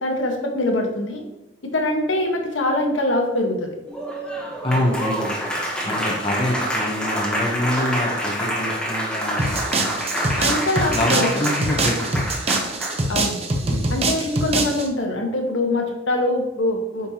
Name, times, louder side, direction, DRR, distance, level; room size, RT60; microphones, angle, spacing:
voice 1, 0.0-1.2 1.6-3.8 10.4-11.4 13.1-13.4 13.9-17.1, left 1 dB, 80° left, 2 dB, 1.3 m, -23 dB
Applause, 3.9-13.1, equal, 5° left, 1.2 m, -27 dB
voice 2, 4.6-5.4 5.8-10.1 10.9-12.2 13.6-13.9, left 1 dB, 25° left, 0 dB, 0.9 m, -25 dB
sound 1, 9.4-14.9, right 2 dB, 30° right, 0.8 m, -24 dB
8.9 x 5.4 x 2.9 m, 0.91 s
head